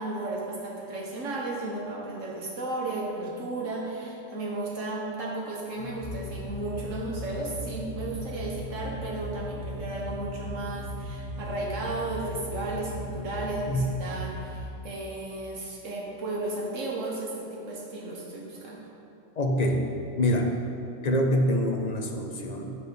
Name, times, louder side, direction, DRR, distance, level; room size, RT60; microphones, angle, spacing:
voice 1, 0.0-18.8, right 2 dB, 85° right, -2 dB, 1.7 m, -34 dB
sound 1, 5.8-14.6, left 1 dB, 60° left, 1.3 m, -37 dB
voice 2, 19.4-19.8 20.2-20.5 21.0-22.8, equal, 40° left, 2 dB, 0.7 m, -25 dB
8.4 x 4.3 x 6.6 m, 2.8 s
omnidirectional pair, 1.3 m